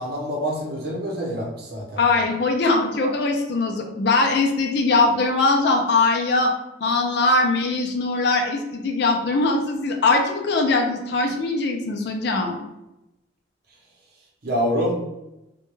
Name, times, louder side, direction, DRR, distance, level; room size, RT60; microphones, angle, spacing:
voice 1, 0.0-2.2 14.4-15.0, equal, 55° right, -2 dB, 0.6 m, -26 dB
voice 2, 2.0-6.5 6.8-12.6, left 3 dB, 60° left, 2 dB, 0.4 m, -21 dB
2.2 x 2.2 x 3.0 m, 0.93 s
head